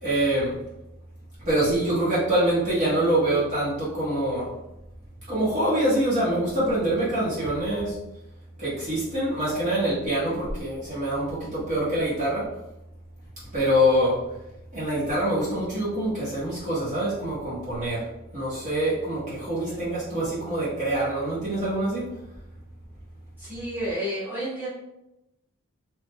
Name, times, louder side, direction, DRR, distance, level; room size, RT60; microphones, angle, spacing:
voice 1, 0.0-0.6 1.4-4.5 5.3-8.0 8.6-12.5 13.5-14.3 14.7-18.0 18.3-22.1, right 1 dB, 35° right, -9 dB, 1.2 m, -25 dB
voice 2, 23.4-24.7, equal, 10° right, -10 dB, 1.3 m, -31 dB
3.7 x 3.0 x 2.2 m, 0.90 s
head